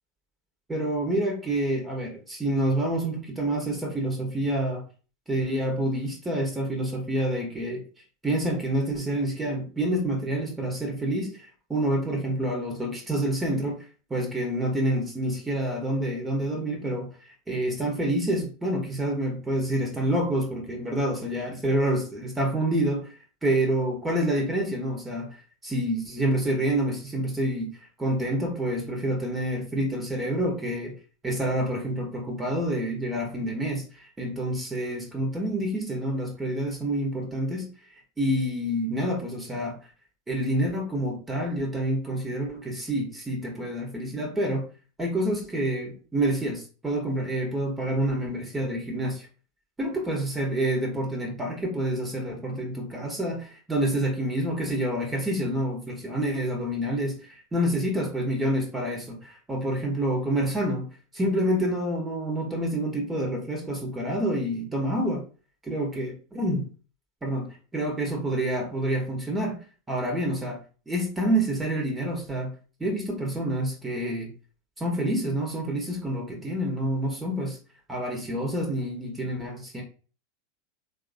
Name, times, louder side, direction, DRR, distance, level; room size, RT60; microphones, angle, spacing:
voice 1, 0.7-4.8 5.3-7.8 8.2-13.8 14.1-23.1 23.4-25.3 25.6-31.0 31.2-37.7 38.2-39.8 40.3-44.7 45.0-49.3 49.8-60.9 61.1-65.2 65.6-66.7 67.2-70.6 70.9-72.5 72.8-74.3 74.8-77.6 77.9-79.8, right 1 dB, 15° right, 0 dB, 1.0 m, -28 dB
3.2 x 2.5 x 2.5 m, 0.37 s
figure-of-eight pair, 85°, 0 cm